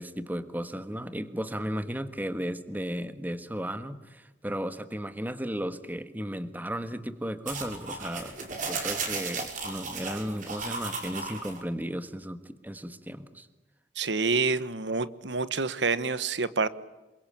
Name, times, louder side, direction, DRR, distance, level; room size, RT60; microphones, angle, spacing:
voice 1, 0.0-8.4 8.6-13.5, equal, 10° right, 11 dB, 1.4 m, -35 dB
sound 1, 7.5-11.6, right 4 dB, 45° right, 5.5 m, -35 dB
voice 2, 14.0-16.7, right 4 dB, 85° right, 15 dB, 1.2 m, -27 dB
27.5 x 22.5 x 8.7 m, 1.1 s
head